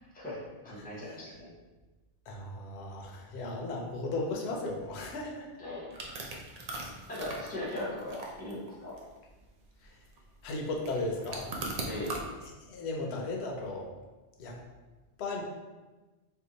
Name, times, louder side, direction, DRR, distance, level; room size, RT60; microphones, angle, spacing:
voice 1, 0.1-1.5 5.6-5.9 7.1-9.0 11.9-12.2, left 1 dB, 10° left, -6 dB, 0.7 m, -38 dB
voice 2, 0.8-1.2 2.3-5.5 7.0-7.1 9.8-10.0 10.4-11.6 12.7-13.9 14.4-14.6 15.2-15.4, left 2 dB, 70° left, 1 dB, 0.8 m, -36 dB
sound 1, 5.9-12.2, right 2 dB, 60° right, 0.4 m, -40 dB
2.8 x 2.2 x 3.8 m, 1.2 s
omnidirectional pair, 1.2 m